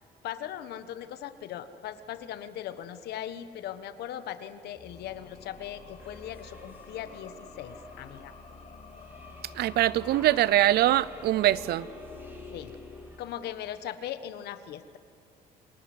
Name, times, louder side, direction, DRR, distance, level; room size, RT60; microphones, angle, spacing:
voice 1, 0.2-8.3 12.5-12.7 13.2-15.0, left 11 dB, 75° left, 12 dB, 1.5 m, -39 dB
sound 1, 4.7-13.8, left 3 dB, 45° left, 4.7 m, -48 dB
sound 2, 6.0-13.3, right 1 dB, 10° right, 3.6 m, -52 dB
voice 2, 9.6-11.9, right 14 dB, 70° right, 20 dB, 0.7 m, -23 dB
27.0 x 20.0 x 9.7 m, 2.3 s
cardioid pair, 110°, 17 cm